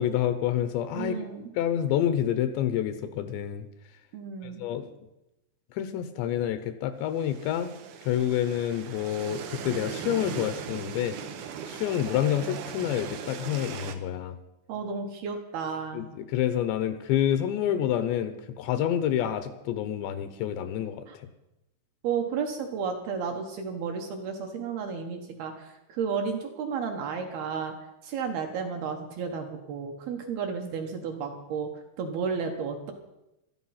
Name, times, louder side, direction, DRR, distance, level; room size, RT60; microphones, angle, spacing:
voice 1, 0.0-1.3 1.5-3.7 4.4-4.9 5.7-7.7 8.0-11.2 11.7-14.4 15.9-21.3, left 10 dB, 80° left, 10 dB, 2.8 m, -28 dB
voice 2, 0.9-1.5 4.1-4.6 14.7-16.1 21.1-21.2 22.0-27.8 28.0-31.7 32.0-32.9, right 6 dB, 70° right, 3 dB, 2.7 m, -32 dB
sound 1, 7.1-13.9, right 7 dB, 90° right, 1.8 m, -39 dB
15.5 x 13.0 x 5.7 m, 0.92 s
omnidirectional pair, 5.5 m